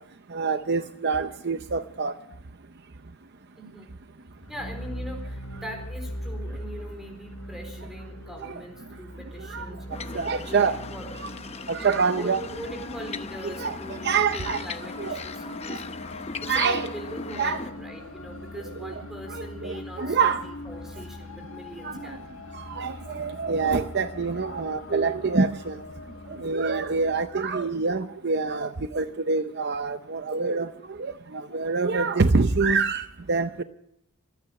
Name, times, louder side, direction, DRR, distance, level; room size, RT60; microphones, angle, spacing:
voice 1, 0.3-2.1 8.4-8.5 9.5-9.7 10.1-10.8 11.2-11.3 11.7-12.5 13.4-13.8 14.0-14.6 15.0-15.2 15.7-15.8 16.5-16.9 17.4-17.6 18.8-18.9 19.3-20.4 21.8-22.2 22.5-25.8 26.3-33.6, right 4 dB, 50° right, 10 dB, 0.6 m, -26 dB
voice 2, 3.6-4.0 4.5-11.1 12.1-22.2, equal, ahead, 3 dB, 4.1 m, -41 dB
sound 1, 4.4-14.4, equal, 90° left, 4.8 m, -40 dB
sound 2, 9.9-17.7, left 4 dB, 30° left, 0.8 m, -38 dB
sound 3, 12.0-28.2, left 2 dB, 65° left, 1.4 m, -42 dB
25.5 x 9.6 x 5.8 m, 0.77 s
head